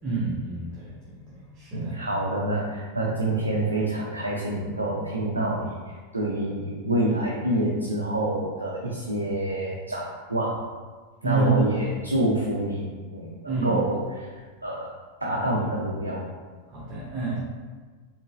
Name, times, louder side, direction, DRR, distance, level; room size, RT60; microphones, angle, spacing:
voice 1, 0.0-2.0 11.2-12.0 13.5-13.8 16.7-17.4, right 3 dB, 30° right, -8 dB, 1.0 m, -28 dB
voice 2, 1.7-10.6 11.2-14.3 14.6-14.9 15.2-16.2, right 1 dB, 80° right, -4 dB, 0.6 m, -27 dB
4.5 x 3.4 x 3.0 m, 1.4 s
figure-of-eight pair, 90°, 0 cm